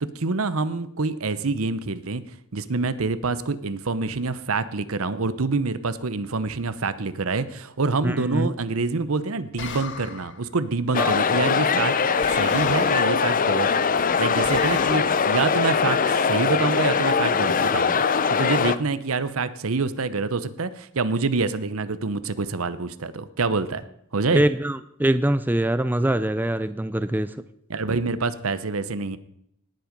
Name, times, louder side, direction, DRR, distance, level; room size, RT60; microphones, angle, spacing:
voice 1, 0.0-2.2 2.5-13.8 14.2-23.8 24.1-24.4 27.7-29.2, right 3 dB, 70° right, 14 dB, 0.9 m, -26 dB
voice 2, 8.0-8.5 11.0-11.1 24.3-27.4, right 1 dB, 10° right, 12 dB, 0.4 m, -23 dB
sound 1, 9.6-10.4 12.2-13.3 14.4-15.0, left 6 dB, 55° left, 1.4 m, -35 dB
sound 2, 10.9-18.8, left 6 dB, 40° left, 0.6 m, -22 dB
18.5 x 7.7 x 5.3 m, 0.73 s
head